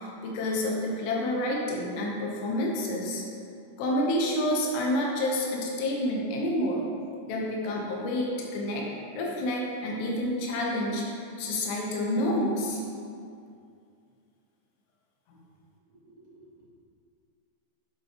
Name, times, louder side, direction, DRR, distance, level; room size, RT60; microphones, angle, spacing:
voice 1, 0.0-3.2 3.8-6.8 7.2-8.9 9.1-11.0 11.4-12.8, left 1 dB, 90° left, -2 dB, 3.1 m, -28 dB
voice 2, 15.9-16.7, right 2 dB, 40° right, -9 dB, 2.5 m, -55 dB
9.6 x 7.3 x 2.9 m, 2.4 s
omnidirectional pair, 4.7 m